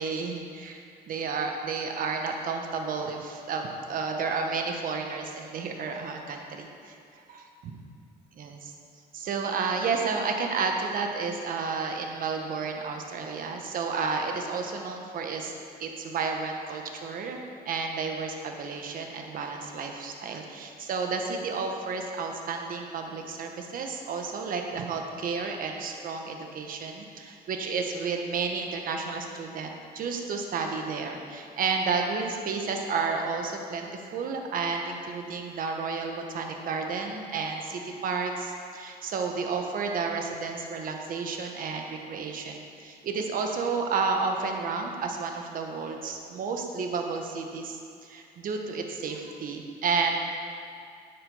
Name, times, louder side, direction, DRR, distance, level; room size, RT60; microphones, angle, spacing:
voice 1, 0.0-6.9 7.3-7.8 8.4-8.7 9.1-15.5 15.8-17.4 17.6-50.2, right 4 dB, 55° right, 3 dB, 1.3 m, -31 dB
9.7 x 8.0 x 5.6 m, 2.3 s
cardioid pair, 110°, 17 cm